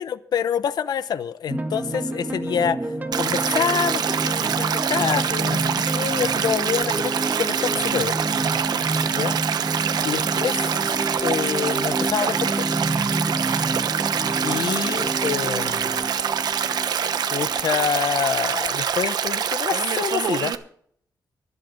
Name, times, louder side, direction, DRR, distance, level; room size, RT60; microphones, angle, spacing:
voice 1, 0.0-8.2 9.1-9.4 10.0-10.7 11.2-12.7 14.4-16.1 17.3-20.5, left 8 dB, 75° left, 0.8 m, -27 dB
sound 1, 1.5-18.4, right 2 dB, 25° right, 1.6 m, -29 dB
Stream, 3.1-20.6, right 8 dB, 75° right, 1.0 m, -25 dB
24.5 x 8.4 x 4.0 m
cardioid pair, 110°, 7 cm